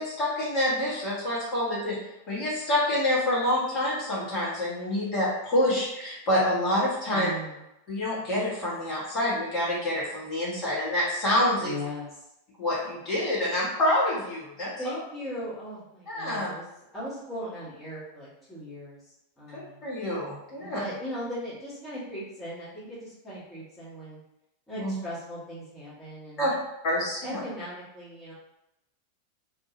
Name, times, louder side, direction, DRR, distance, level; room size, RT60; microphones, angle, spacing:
voice 1, 0.0-2.0 2.3-7.3 7.9-11.7 12.6-14.7 16.1-16.5 19.5-20.8 24.8-24.9 26.4-26.5 26.8-27.4, left 1 dB, 35° left, -8 dB, 1.4 m, -27 dB
voice 2, 7.1-7.6 11.6-12.2 14.8-16.6 16.9-19.8 20.6-24.2 24.7-26.6 27.2-28.3, equal, 10° left, -10 dB, 1.2 m, -38 dB
2.7 x 2.6 x 2.9 m, 0.90 s
figure-of-eight pair, 90°, 0 cm